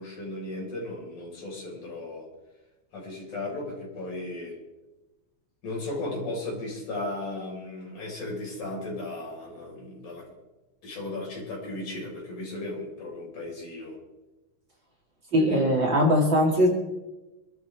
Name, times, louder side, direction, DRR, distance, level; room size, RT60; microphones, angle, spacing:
voice 1, 0.0-2.3 2.9-4.5 5.6-10.2 10.8-14.0 15.4-15.9, left 2 dB, 65° left, -3 dB, 6.6 m, -36 dB
voice 2, 15.3-16.7, equal, 35° right, -2 dB, 3.1 m, -21 dB
25.5 x 13.0 x 3.6 m, 1.1 s
omnidirectional pair, 3.7 m